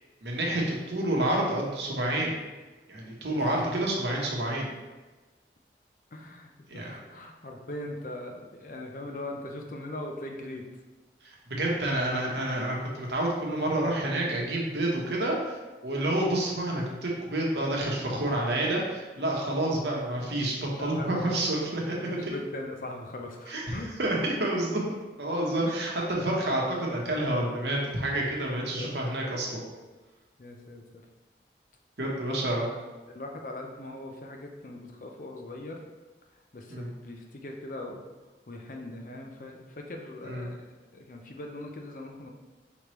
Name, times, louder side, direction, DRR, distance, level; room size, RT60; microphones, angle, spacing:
voice 1, 0.2-2.4 2.9-4.7 6.7-6.9 11.5-15.6 15.8-22.3 23.5-24.8 25.2-29.6 32.0-32.7 36.7-36.9 40.2-40.5, right 1 dB, 75° right, -2 dB, 1.0 m, -29 dB
voice 2, 6.1-10.7 15.9-16.1 20.8-21.4 22.0-23.9 25.7-26.0 28.8-29.7 30.4-31.0 32.2-35.8 36.5-38.1 38.5-42.3, left 1 dB, 50° left, 2 dB, 0.5 m, -41 dB
5.1 x 3.1 x 3.1 m, 1.2 s
head